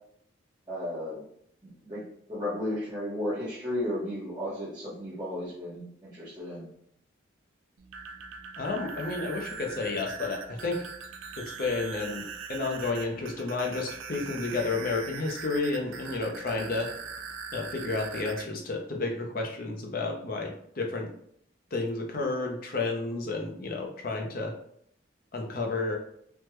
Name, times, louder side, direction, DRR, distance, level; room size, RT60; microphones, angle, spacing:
voice 1, 0.7-1.2 1.6-2.0 2.3-6.7, left 1 dB, 20° right, -11 dB, 0.8 m, -34 dB
sound 1, 7.8-18.4, right 5 dB, 85° right, 0.4 m, -41 dB
voice 2, 8.6-10.9 11.4-16.9 17.5-21.1 21.7-24.5 25.3-26.0, left 3 dB, 45° left, 1 dB, 0.6 m, -31 dB
3.4 x 2.1 x 3.0 m, 0.68 s
head